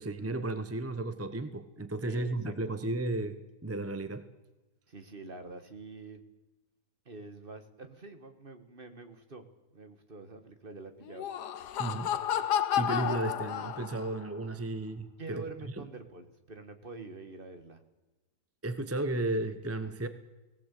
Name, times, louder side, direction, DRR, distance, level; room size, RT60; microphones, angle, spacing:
voice 1, 0.0-4.3 11.8-12.1 12.8-15.4 18.6-20.1, right 2 dB, 10° right, 10 dB, 0.8 m, -34 dB
voice 2, 2.0-2.8 4.9-6.2 7.1-9.5 9.7-11.3 15.2-17.8, right 3 dB, 35° right, 8 dB, 1.8 m, -46 dB
Laughter, 11.0-14.2, left 10 dB, 80° left, 1.4 m, -31 dB
19.0 x 17.0 x 8.4 m, 1.1 s
omnidirectional pair, 1.7 m